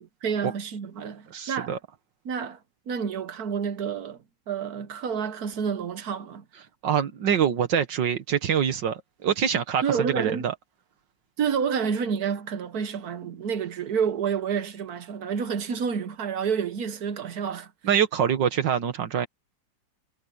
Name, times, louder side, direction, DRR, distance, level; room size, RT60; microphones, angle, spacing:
voice 1, 0.2-1.8 2.2-2.6 2.9-4.2 4.5-6.4 9.8-10.4 11.4-17.7, right 7 dB, 60° right, 1.4 m, -29 dB
voice 2, 1.3-1.8 6.8-10.5 17.8-19.3, right 8 dB, 80° right, 1.9 m, -25 dB
omnidirectional pair, 2.0 m